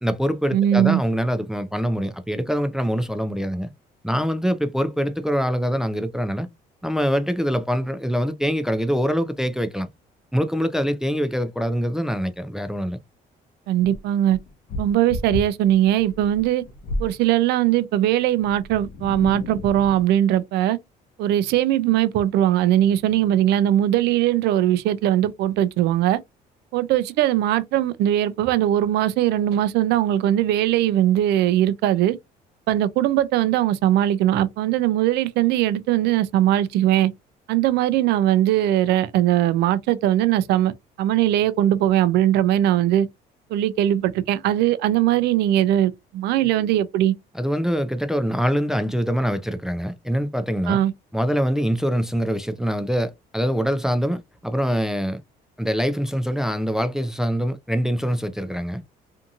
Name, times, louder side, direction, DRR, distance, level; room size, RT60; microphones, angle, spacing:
voice 1, 0.0-3.7 4.0-6.5 6.8-9.9 10.3-13.0 47.3-50.8 51.1-55.2 55.6-58.8, equal, 5° right, 0.3 m, -24 dB
voice 2, 0.5-1.0 13.7-14.4 14.8-16.6 17.0-20.8 21.2-26.2 26.7-32.2 32.7-37.1 37.5-40.7 41.0-43.1 43.5-47.1 50.7-50.9, right 12 dB, 75° right, 0.4 m, -20 dB
sound 1, 13.8-17.2 18.4-20.1, left 2 dB, 55° left, 0.7 m, -33 dB
2.7 x 2.5 x 2.5 m
cardioid pair, 110°, 17 cm